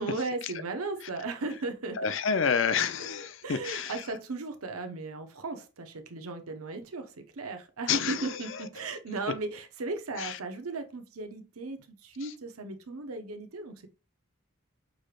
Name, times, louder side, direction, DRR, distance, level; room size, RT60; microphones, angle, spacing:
voice 1, 0.0-2.0 3.4-13.9, right 3 dB, 80° right, 0.8 m, -36 dB
voice 2, 2.0-4.0 7.9-8.6 10.2-10.4 12.2-12.3, left 6 dB, 55° left, 0.5 m, -29 dB
6.2 x 3.3 x 2.4 m
head